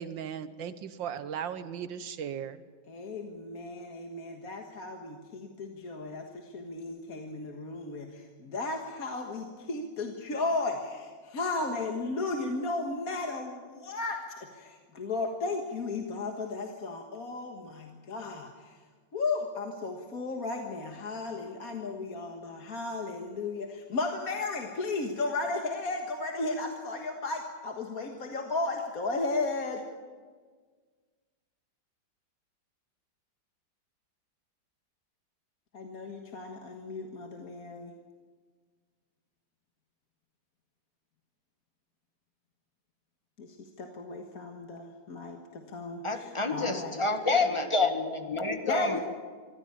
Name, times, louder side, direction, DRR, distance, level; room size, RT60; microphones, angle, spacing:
voice 1, 0.0-2.6, right 8 dB, 90° right, 1.8 m, -37 dB
voice 2, 2.9-18.8 19.1-29.8 35.7-37.9 43.4-47.0 48.7-49.0, left 3 dB, 50° left, 1.9 m, -34 dB
voice 3, 46.0-49.0, left 3 dB, 15° left, 1.6 m, -28 dB
24.0 x 15.0 x 8.7 m
omnidirectional pair, 2.0 m